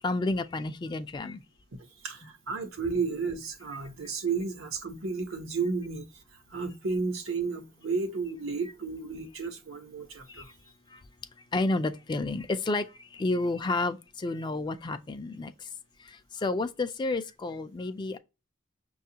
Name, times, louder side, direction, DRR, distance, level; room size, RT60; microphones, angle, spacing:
voice 1, 0.0-1.4 2.2-2.3 10.3-10.4 10.9-11.0 11.5-15.7 16.0-18.2, left 2 dB, 25° left, 0.3 m, -31 dB
voice 2, 2.0-6.0 6.5-10.6, right 4 dB, 85° right, 0.8 m, -32 dB
5.8 x 2.3 x 2.7 m
head